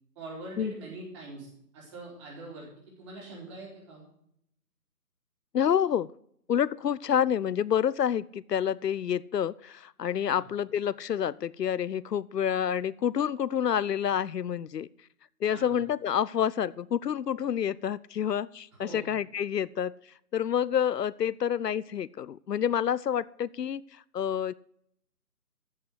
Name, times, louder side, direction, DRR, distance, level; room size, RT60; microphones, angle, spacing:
voice 1, 0.2-4.0 10.3-10.4 15.5-15.8 18.8-19.1, right 2 dB, 20° right, -3 dB, 3.6 m, -43 dB
voice 2, 5.5-6.1 6.5-14.9 15.4-19.9 20.3-23.8 24.1-24.5, left 9 dB, 80° left, 19 dB, 0.6 m, -28 dB
14.0 x 5.6 x 7.9 m, 0.71 s
figure-of-eight pair, 155°, 48 cm